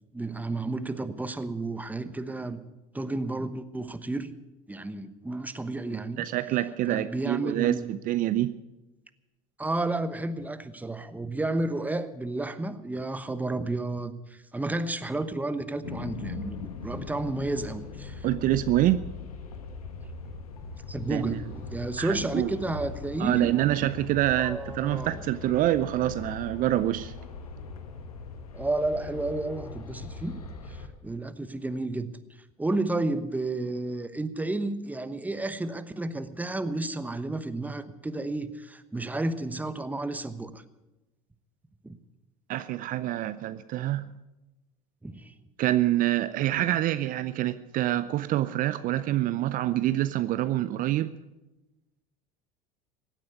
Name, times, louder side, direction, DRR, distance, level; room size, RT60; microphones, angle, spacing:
voice 1, 0.1-2.6 2.9-4.3 4.7-6.2 6.9-7.9 9.6-18.3 20.9-23.5 24.4-25.2 28.5-30.4 30.6-32.1 32.6-40.6 41.8-41.9 45.0-45.3, right 2 dB, 10° right, 12 dB, 1.1 m, -31 dB
voice 2, 5.9-8.6 18.2-19.0 21.1-21.4 22.0-22.5 23.2-27.1 42.5-44.1 45.6-51.2, right 14 dB, 50° right, 13 dB, 0.6 m, -26 dB
sound 1, 15.8-30.9, left 4 dB, 90° left, 1.5 m, -40 dB
16.5 x 9.0 x 8.1 m, 1.0 s
hypercardioid pair, 80°, 18 cm